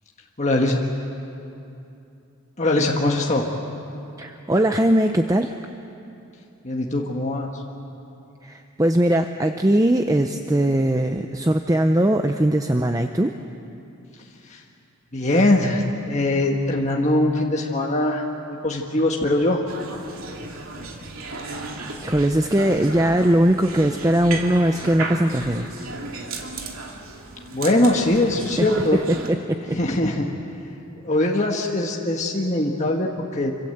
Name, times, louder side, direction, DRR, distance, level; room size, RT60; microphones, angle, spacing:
voice 1, 0.4-0.8 2.6-3.5 6.6-7.5 14.5-14.6 15.1-19.6 27.5-29.0 29.7-30.3 31.0-33.5, left 1 dB, 30° left, -1 dB, 1.6 m, -21 dB
voice 2, 4.2-5.6 8.4-13.4 22.0-25.8 28.6-28.7 29.1-29.8, right 1 dB, 15° right, 6 dB, 0.6 m, -20 dB
sound 1, 19.7-29.3, right 3 dB, 70° right, 2.7 m, -34 dB
27.5 x 25.5 x 7.9 m, 2.7 s
head